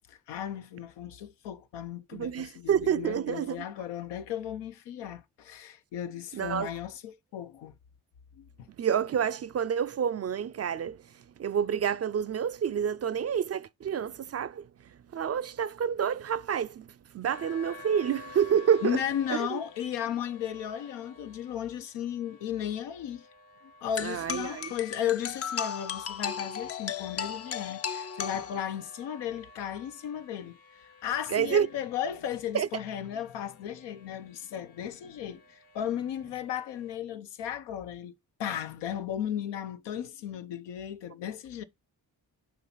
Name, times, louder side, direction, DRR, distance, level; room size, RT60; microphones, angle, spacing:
voice 1, 0.1-7.7 8.4-8.7 18.8-23.3 23.8-41.6, left 10 dB, 85° left, 0.6 m, -35 dB
voice 2, 2.1-3.6 6.3-6.7 8.8-19.0 19.3-19.6 24.0-24.7 31.3-31.7 32.5-32.7, right 8 dB, 40° right, 0.4 m, -29 dB
sound 1, 17.3-37.0, left 3 dB, 60° left, 1.0 m, -53 dB
Xylophone scale descent improv, 24.0-29.0, left 7 dB, 35° left, 0.5 m, -36 dB
5.7 x 3.0 x 5.5 m
supercardioid pair, 40°, 42 cm